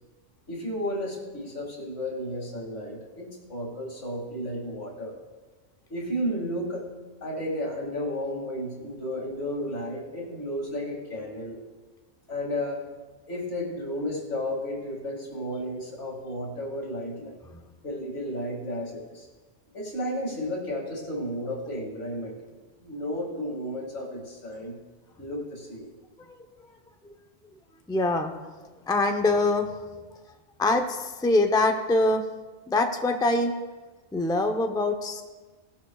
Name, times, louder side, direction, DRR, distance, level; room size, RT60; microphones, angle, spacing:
voice 1, 0.5-5.2 5.9-6.9 7.2-11.6 12.3-12.8 13.3-17.3 17.8-19.3 19.7-24.8 25.2-25.9, equal, 85° left, -1 dB, 2.7 m, -33 dB
voice 2, 27.9-28.3 28.9-29.8 30.6-32.2 32.7-33.5 34.1-35.2, left 2 dB, 5° left, 5 dB, 0.6 m, -24 dB
18.5 x 11.5 x 2.4 m, 1.3 s
omnidirectional pair, 1.2 m